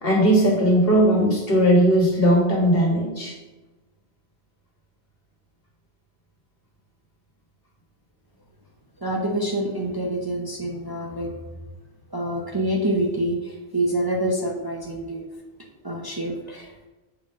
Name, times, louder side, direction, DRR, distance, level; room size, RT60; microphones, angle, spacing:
voice 1, 0.0-3.3, equal, 60° left, -1 dB, 1.9 m, -18 dB
voice 2, 9.0-11.3 12.1-15.3 15.8-16.9, right 1 dB, 25° right, 0 dB, 0.7 m, -26 dB
7.1 x 3.5 x 5.3 m, 1.1 s
omnidirectional pair, 1.1 m